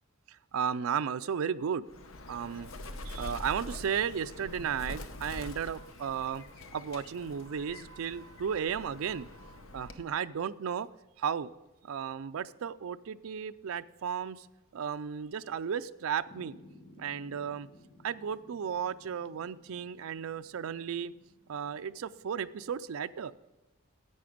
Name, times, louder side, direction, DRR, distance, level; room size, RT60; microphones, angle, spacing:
voice 1, 0.3-1.8 2.3-2.7 3.0-6.4 6.7-10.9 11.2-11.5 11.8-14.5 14.7-16.5 17.0-17.7 18.0-21.1 21.5-23.3, right 7 dB, 70° right, 12 dB, 0.4 m, -34 dB
Bird, 1.9-10.2, left 2 dB, 70° left, 0.8 m, -45 dB
sound 1, 16.3-22.7, left 1 dB, 25° left, 1.3 m, -58 dB
11.0 x 8.5 x 5.1 m, 1.0 s
head